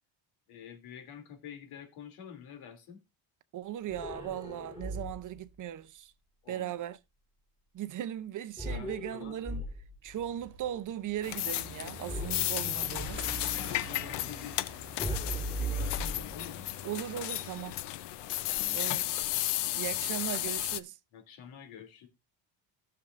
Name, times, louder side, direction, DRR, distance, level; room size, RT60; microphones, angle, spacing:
voice 1, 0.5-3.0 6.4-6.7 8.7-9.3 13.0-14.7 15.6-16.6 18.5-18.8 21.1-22.1, left 8 dB, 90° left, 2.9 m, -48 dB
voice 2, 3.5-6.1 6.5-7.0 7.7-9.6 10.0-13.2 16.8-17.8 18.7-19.0 19.7-21.0, right 11 dB, 40° right, 0.6 m, -38 dB
sound 1, 3.9-5.4 8.6-10.1 12.1-13.3 15.0-16.7, right 1 dB, 10° left, 3.0 m, -37 dB
sound 2, 10.0-18.4, right 2 dB, 25° right, 1.5 m, -48 dB
sound 3, 11.2-20.8, left 14 dB, 60° left, 0.7 m, -34 dB
16.5 x 6.9 x 2.5 m
cardioid pair, 175°, 47 cm